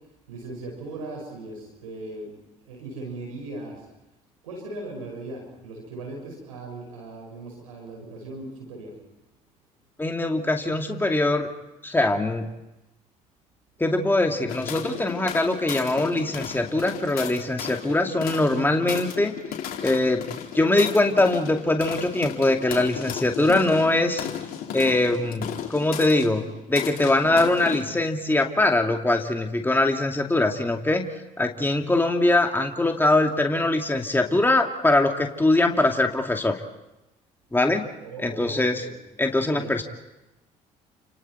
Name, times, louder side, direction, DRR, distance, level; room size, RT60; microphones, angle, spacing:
voice 1, 0.3-2.4 2.6-3.8 4.4-8.9 38.0-38.9 39.4-39.7, right 2 dB, 90° right, 1 dB, 5.7 m, -38 dB
voice 2, 10.0-11.5 11.8-12.5 13.8-19.3 19.8-20.2 20.5-24.3 24.7-31.0 31.4-36.6 37.5-37.9 38.2-38.8 39.2-39.8, left 2 dB, 10° left, 3 dB, 2.5 m, -22 dB
sound 1, 14.5-27.8, left 9 dB, 60° left, 4.3 m, -35 dB
30.0 x 27.5 x 4.5 m, 0.98 s
hypercardioid pair, 55°, 17 cm